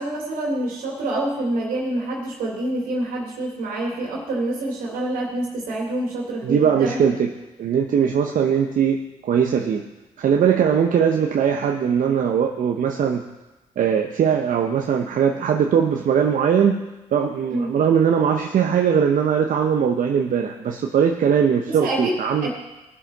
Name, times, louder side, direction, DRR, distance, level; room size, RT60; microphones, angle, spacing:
voice 1, 0.0-7.0 17.5-17.7 21.6-22.5, right 1 dB, 75° right, -2 dB, 2.7 m, -27 dB
voice 2, 6.4-7.3 7.6-9.8 10.2-13.2 13.8-16.8 17.1-22.5, right 7 dB, 60° right, 3 dB, 0.9 m, -20 dB
17.5 x 7.6 x 4.1 m, 1.1 s
supercardioid pair, 55°, 15 cm